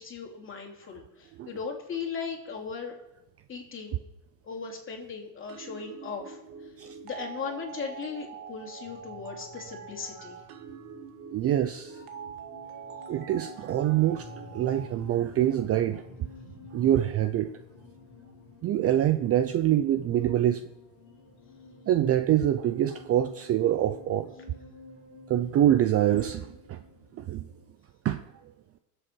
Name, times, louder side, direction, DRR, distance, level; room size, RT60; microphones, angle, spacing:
voice 1, 0.0-3.0 3.5-4.0 4.4-6.4 7.0-10.4, left 5 dB, 25° left, 1 dB, 3.0 m, -37 dB
sound 1, 5.5-14.9, right 6 dB, 50° right, 1.5 m, -44 dB
sound 2, 8.8-27.7, left 3 dB, 45° left, 2.5 m, -51 dB
voice 2, 11.3-12.0 13.1-16.0 16.7-17.5 18.6-20.6 21.9-24.3 25.3-26.8 27.2-27.4 28.0-28.2, right 11 dB, 35° right, 11 dB, 0.5 m, -25 dB
20.5 x 7.9 x 4.6 m, 0.94 s
supercardioid pair, 125°, 45 cm